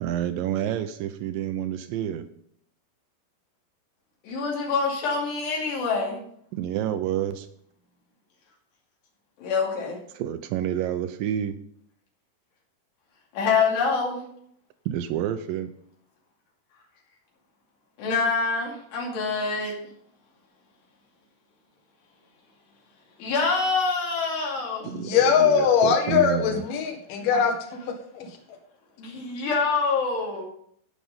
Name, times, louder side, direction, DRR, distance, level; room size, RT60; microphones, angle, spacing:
voice 1, 0.0-2.3 6.5-7.5 10.1-11.6 14.9-15.7 24.9-26.6, right 10 dB, 90° right, 10 dB, 1.9 m, -29 dB
voice 2, 4.2-6.2 9.4-10.0 13.3-14.2 18.0-19.7 23.2-24.9 27.2-27.3 29.0-30.4, left 4 dB, 85° left, -2 dB, 4.7 m, -26 dB
voice 3, 24.8-28.4, left 7 dB, 60° left, 3 dB, 3.0 m, -22 dB
16.5 x 6.1 x 5.5 m, 0.67 s
omnidirectional pair, 4.7 m